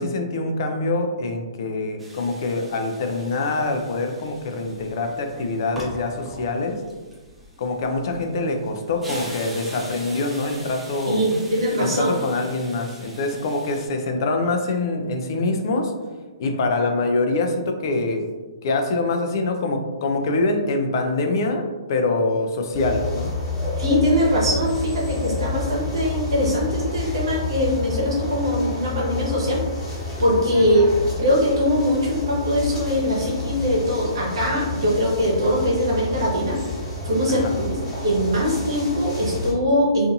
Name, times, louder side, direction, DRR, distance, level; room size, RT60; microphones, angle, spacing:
voice 1, 0.0-6.9 7.6-11.3 11.8-15.9 16.4-18.3 18.6-23.3 30.6-30.7 37.3-37.5, left 2 dB, 55° left, 5 dB, 0.4 m, -24 dB
sound 1, 2.0-13.9, right 1 dB, 5° right, 0.6 m, -41 dB
voice 2, 11.1-12.1 23.8-29.6 30.2-30.8 31.2-36.6 37.0-40.1, equal, 70° right, -3 dB, 0.9 m, -22 dB
sound 2, 22.7-39.5, left 3 dB, 25° left, 1.2 m, -29 dB
2.5 x 2.5 x 2.5 m, 1.3 s
hypercardioid pair, 125°, 3 cm